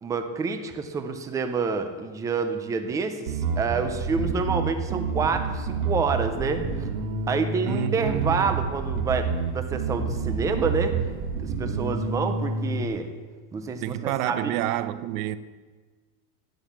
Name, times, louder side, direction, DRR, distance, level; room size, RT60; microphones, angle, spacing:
voice 1, 0.0-6.9 7.3-11.0 11.4-13.1 13.5-14.5, right 4 dB, 10° right, 0.3 m, -28 dB
Bass guitar, 3.3-12.9, right 4 dB, 85° right, 2.1 m, -29 dB
voice 2, 7.7-8.6 13.8-15.4, right 14 dB, 70° right, 0.8 m, -29 dB
11.5 x 9.0 x 8.0 m
cardioid pair, 165°, 44 cm